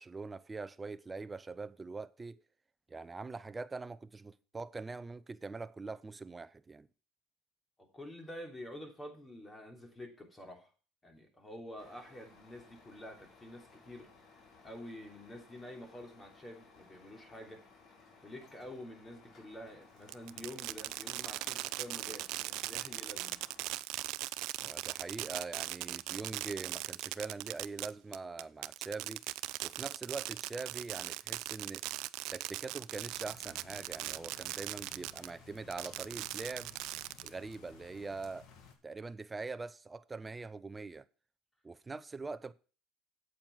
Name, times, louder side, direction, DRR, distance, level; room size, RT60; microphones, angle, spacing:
voice 1, 0.0-2.4 2.9-6.9 24.6-29.2 29.6-31.8 32.3-36.7 37.2-38.5 38.8-41.1 41.6-42.5, right 3 dB, 20° right, 0.7 m, -43 dB
voice 2, 7.8-10.7 11.0-14.1 14.6-17.6 18.2-23.4, left 1 dB, 20° left, 3.1 m, -48 dB
Truck, 11.8-23.8, left 4 dB, 50° left, 3.5 m, -60 dB
Fireworks, 20.1-35.3 35.7-37.5, right 18 dB, 70° right, 0.4 m, -39 dB
sound 1, 33.1-38.7, left 6 dB, 65° left, 2.3 m, -57 dB
8.7 x 7.9 x 5.7 m
supercardioid pair, 95°, 0 cm